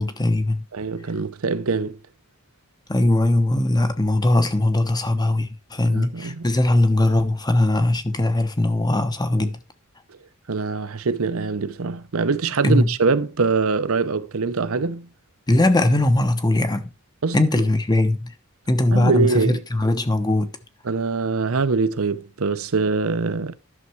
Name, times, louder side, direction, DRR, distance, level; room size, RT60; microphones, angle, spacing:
voice 1, 0.0-0.6 2.9-9.6 12.6-12.9 15.5-16.9 17.3-18.3 18.7-20.5, left 1 dB, 20° left, 1.0 m, -20 dB
voice 2, 0.7-2.0 5.9-6.5 10.5-15.1 17.2-17.4 18.9-19.6 20.8-23.5, right 4 dB, 70° right, 0.7 m, -23 dB
11.0 x 6.7 x 4.6 m
head